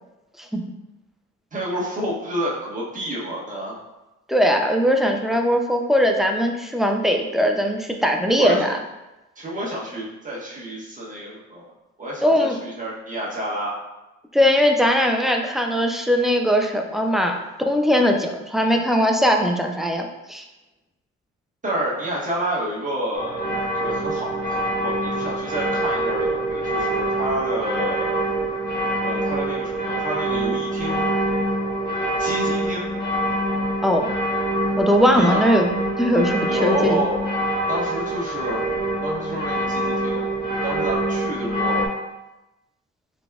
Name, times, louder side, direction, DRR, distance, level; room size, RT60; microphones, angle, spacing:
voice 1, 1.5-3.7 8.3-8.7 9.4-11.7 12.0-13.8 21.6-23.4 23.8-28.2 29.0-31.0 32.2-32.9 35.1-35.4 36.5-37.2 37.7-38.7 39.0-41.9, right 1 dB, 25° right, -5 dB, 1.3 m, -29 dB
voice 2, 4.3-8.8 12.2-12.6 14.3-17.4 17.7-20.4 33.8-34.1 34.8-37.1, equal, ahead, 2 dB, 0.4 m, -20 dB
sound 1, 23.1-41.9, right 1 dB, 30° left, 1.1 m, -25 dB
3.9 x 3.4 x 2.3 m, 1.0 s
cardioid pair, 90°, 30 cm